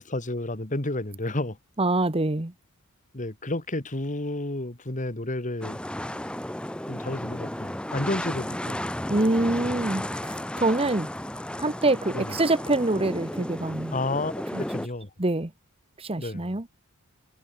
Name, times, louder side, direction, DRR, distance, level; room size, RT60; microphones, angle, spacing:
voice 1, 0.0-1.6 3.1-5.8 6.9-8.8 12.1-12.3 13.9-15.1 16.2-16.5, left 2 dB, 35° left, 2.1 m, -31 dB
voice 2, 1.8-2.5 9.1-11.1 11.6-14.0 14.5-14.6 15.2-15.5 16.0-16.7, right 2 dB, 25° right, 1.3 m, -25 dB
sound 1, 5.6-14.9, left 1 dB, 5° left, 0.7 m, -33 dB
head